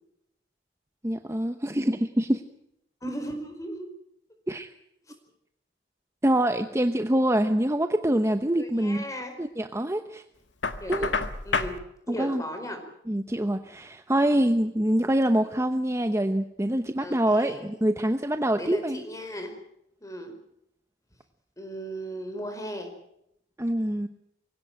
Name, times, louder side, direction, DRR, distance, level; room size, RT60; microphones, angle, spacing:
voice 1, 1.0-2.4 4.5-4.7 6.2-9.0 9.4-10.2 10.9-11.1 12.1-12.4 13.1-19.0 23.6-24.1, right 1 dB, 15° right, 8 dB, 0.9 m, -25 dB
voice 2, 3.0-3.8 8.6-9.3 10.8-11.1 11.4-11.7 12.1-12.8 17.0-17.7 18.6-19.5 20.0-20.3 21.6-22.9, equal, 20° left, 6 dB, 4.8 m, -36 dB
Knock, 10.6-11.8, left 4 dB, 85° left, 1.6 m, -28 dB
23.5 x 17.0 x 8.9 m, 0.78 s
head